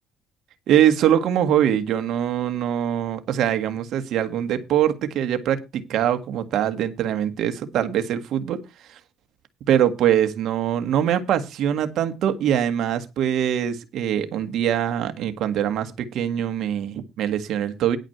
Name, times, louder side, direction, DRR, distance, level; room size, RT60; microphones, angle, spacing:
voice 1, 0.7-8.6 8.9-9.0 9.7-18.0, right 10 dB, 65° right, 9 dB, 1.8 m, -23 dB
11.0 x 4.9 x 7.9 m, 0.25 s
cardioid pair, 100°, 0 cm